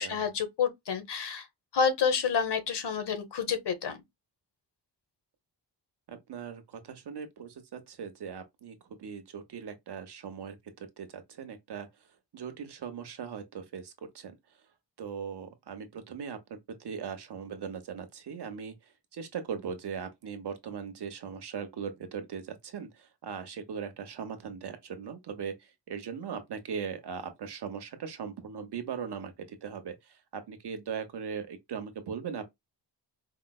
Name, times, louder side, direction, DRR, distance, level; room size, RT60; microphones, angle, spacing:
voice 1, 0.0-1.5 1.7-4.0, left 6 dB, 70° left, 1.1 m, -29 dB
voice 2, 6.1-11.9 12.3-14.3 15.0-18.7 19.1-32.5, right 6 dB, 65° right, 0.9 m, -39 dB
4.9 x 2.0 x 2.3 m
wide cardioid pair, 125°, 42 cm